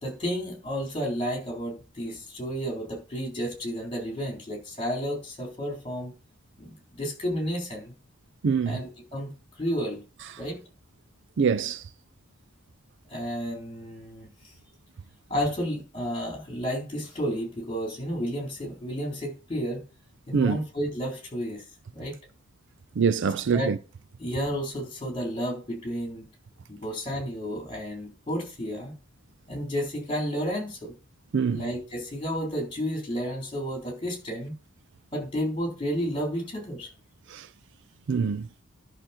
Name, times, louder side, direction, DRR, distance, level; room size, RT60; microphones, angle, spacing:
voice 1, 0.0-6.1 6.6-7.9 8.7-9.3 9.6-10.0 10.4-10.6 13.1-14.3 15.3-19.8 20.3-21.6 21.9-22.2 23.5-23.7 24.2-26.3 26.7-28.9 29.5-30.9 31.5-34.5 35.1-36.9, equal, 25° left, 3.9 m, -31 dB
voice 2, 8.4-8.8 11.4-11.8 20.3-20.6 23.0-23.8 31.3-31.6 37.3-37.5 38.1-38.5, right 6 dB, 60° right, 0.4 m, -24 dB
11.0 x 6.3 x 4.4 m
head